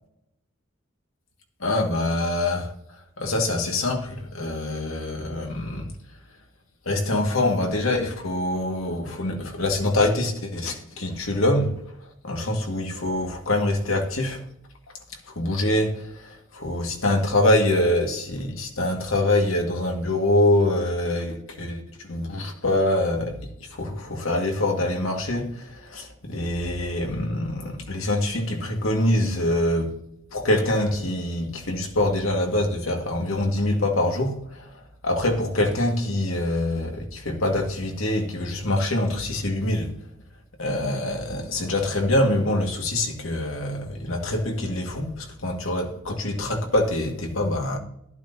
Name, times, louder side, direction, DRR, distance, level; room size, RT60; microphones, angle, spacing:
voice 1, 1.6-2.7 3.2-5.9 6.9-11.7 12.2-14.4 15.3-30.0 30.3-39.9 40.6-47.8, left 1 dB, 75° left, 2.0 m, -25 dB
12.0 x 12.0 x 2.8 m
head